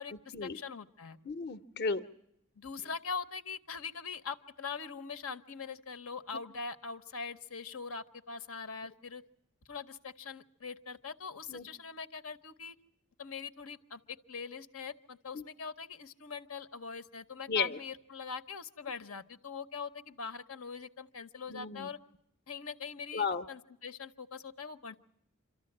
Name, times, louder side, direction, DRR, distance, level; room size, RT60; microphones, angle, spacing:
voice 1, 0.0-1.2 2.6-9.2 9.7-12.8 13.2-22.0 22.5-25.0, left 5 dB, 85° left, 10 dB, 0.9 m, -42 dB
voice 2, 1.2-2.1 11.5-11.7 15.3-15.5 17.5-17.8 21.5-21.9 23.1-23.5, left 5 dB, 50° left, 11 dB, 0.8 m, -34 dB
26.5 x 14.0 x 8.6 m, 0.79 s
head